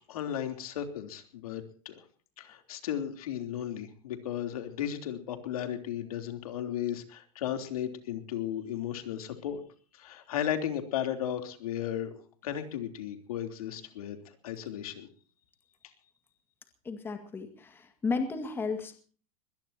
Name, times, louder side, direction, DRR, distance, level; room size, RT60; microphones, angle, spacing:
voice 1, 0.0-2.0 2.4-9.6 9.9-15.1, left 10 dB, 80° left, 6 dB, 3.5 m, -35 dB
voice 2, 16.8-19.0, left 4 dB, 10° left, 6 dB, 2.1 m, -34 dB
22.0 x 20.5 x 2.9 m, 0.42 s
supercardioid pair, 160°, 18 cm